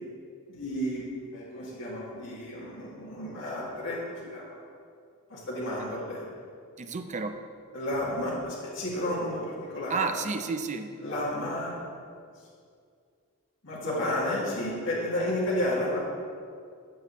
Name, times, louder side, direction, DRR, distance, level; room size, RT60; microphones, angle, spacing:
voice 1, 0.5-1.1 1.3-4.6 5.3-6.2 7.7-10.1 11.0-11.8 13.6-16.0, left 1 dB, 60° left, -6 dB, 2.0 m, -32 dB
voice 2, 6.8-7.4 9.9-10.9, right 4 dB, 35° right, 8 dB, 0.5 m, -31 dB
14.0 x 5.9 x 3.0 m, 2.2 s
head